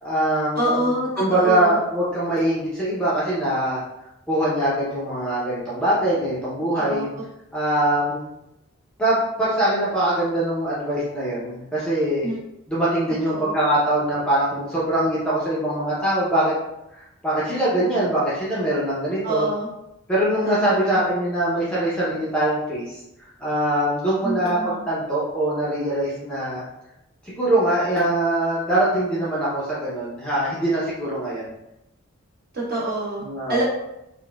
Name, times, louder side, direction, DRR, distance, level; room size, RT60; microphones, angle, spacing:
voice 1, 0.0-0.8 1.2-3.8 4.3-7.1 7.5-8.2 9.0-12.3 12.7-16.5 16.9-19.5 20.1-26.6 27.2-31.5 33.2-33.6, right 1 dB, 5° left, -8 dB, 0.5 m, -23 dB
voice 2, 0.6-1.8 6.7-7.2 12.2-12.4 13.3-13.5 19.2-19.7 20.7-21.0 24.2-24.8 32.5-33.6, right 1 dB, 45° right, -8 dB, 1.3 m, -26 dB
4.0 x 2.1 x 2.2 m, 0.87 s
head